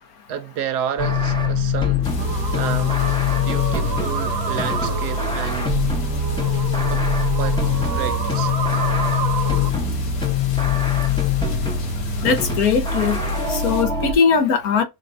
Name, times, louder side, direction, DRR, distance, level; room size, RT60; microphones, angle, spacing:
voice 1, 0.3-3.0 3.4-5.8 6.9-7.1 7.4-8.6, right 9 dB, 75° right, 1.2 m, -31 dB
sound 1, 1.0-14.1, left 5 dB, 5° left, 0.6 m, -22 dB
sound 2, 2.0-13.8, left 6 dB, 90° left, 1.8 m, -34 dB
sound 3, 2.2-9.7, right 6 dB, 50° right, 0.8 m, -30 dB
voice 2, 12.2-13.2 13.5-14.8, left 6 dB, 65° left, 1.4 m, -19 dB
6.6 x 2.4 x 2.6 m
omnidirectional pair, 1.7 m